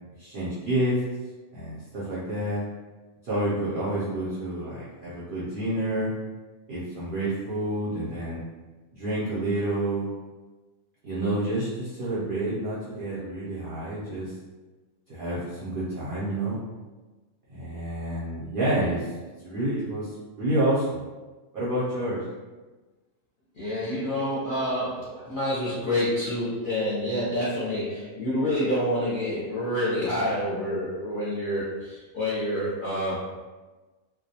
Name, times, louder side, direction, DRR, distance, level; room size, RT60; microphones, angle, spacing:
voice 1, 0.2-1.0 1.5-2.6 3.2-6.1 6.7-8.4 8.9-10.0 11.0-14.3 15.1-16.6 17.5-19.1 19.4-20.1 20.4-21.0 21.5-22.2, right 1 dB, 55° right, -9 dB, 0.6 m, -28 dB
voice 2, 23.5-33.3, left 1 dB, 45° left, -11 dB, 0.7 m, -28 dB
2.3 x 2.2 x 2.8 m, 1.2 s
omnidirectional pair, 1.4 m